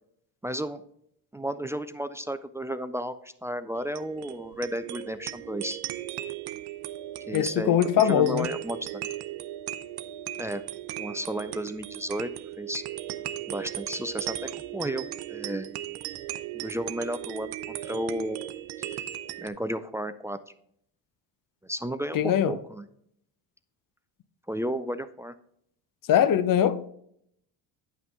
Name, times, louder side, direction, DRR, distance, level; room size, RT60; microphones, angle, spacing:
voice 1, 0.4-0.8 1.3-5.8 7.3-9.0 10.4-10.6 11.0-12.3 12.6-12.8 13.5-15.7 16.5-18.4 18.8-19.0 19.4-20.4 21.6-22.8 24.5-25.3, equal, 5° right, 0.3 m, -33 dB
sound 1, 3.8-19.5, right 13 dB, 65° right, 0.6 m, -37 dB
voice 2, 7.3-8.5 22.1-22.5 26.1-26.9, left 10 dB, 50° left, 0.7 m, -22 dB
9.4 x 5.8 x 3.6 m
supercardioid pair, 80°, 43 cm